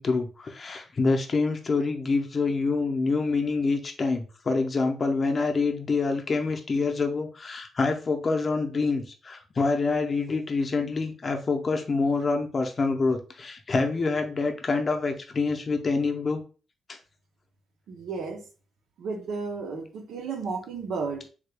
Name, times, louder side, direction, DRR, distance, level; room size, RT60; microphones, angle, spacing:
voice 1, 0.0-16.4 16.9-17.0, left 4 dB, 30° left, 4 dB, 0.5 m, -26 dB
voice 2, 17.9-18.4 19.0-21.2, right 4 dB, 90° right, 4 dB, 0.7 m, -33 dB
3.6 x 2.3 x 3.3 m, 0.35 s
wide cardioid pair, 160°, 0 cm